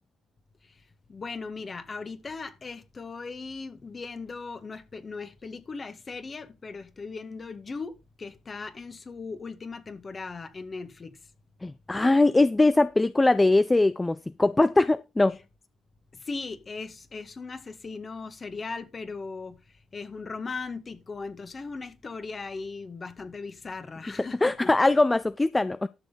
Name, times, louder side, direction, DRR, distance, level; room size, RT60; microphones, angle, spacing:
voice 1, 1.1-11.2 16.1-19.6 19.9-24.7, left 4 dB, 40° left, 2.0 m, -38 dB
voice 2, 11.6-15.4 24.4-25.9, left 2 dB, 20° left, 0.6 m, -21 dB
12.5 x 7.0 x 4.1 m
hypercardioid pair, 45°, 0 cm